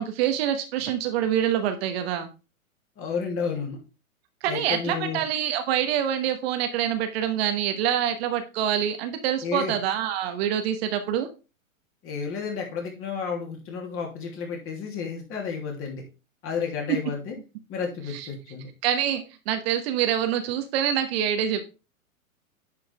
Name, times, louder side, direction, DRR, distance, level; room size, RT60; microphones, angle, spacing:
voice 1, 0.0-2.3 4.4-11.3 18.1-18.3 18.8-21.7, right 10 dB, 45° right, 7 dB, 1.2 m, -26 dB
voice 2, 3.0-3.8 4.5-5.2 9.4-9.7 12.0-16.0 16.4-17.4 17.7-18.7, left 5 dB, 30° left, 0 dB, 3.1 m, -31 dB
9.7 x 5.3 x 3.4 m, 0.30 s
hypercardioid pair, 115°, 42 cm